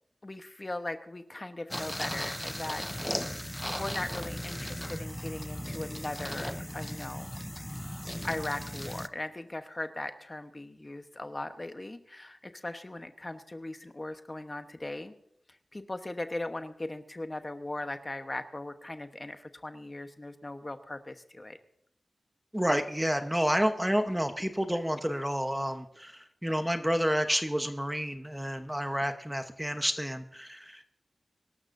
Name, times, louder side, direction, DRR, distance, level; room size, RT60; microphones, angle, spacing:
voice 1, 0.2-2.8 3.7-7.4 8.2-15.1 15.5-21.6, left 2 dB, 30° left, 8 dB, 1.0 m, -39 dB
sound 1, 1.7-9.1, equal, 10° left, 0.6 m, -37 dB
voice 2, 22.5-30.9, equal, 5° right, 7 dB, 1.0 m, -30 dB
24.0 x 12.5 x 2.7 m, 0.70 s
wide cardioid pair, 65°, 0 cm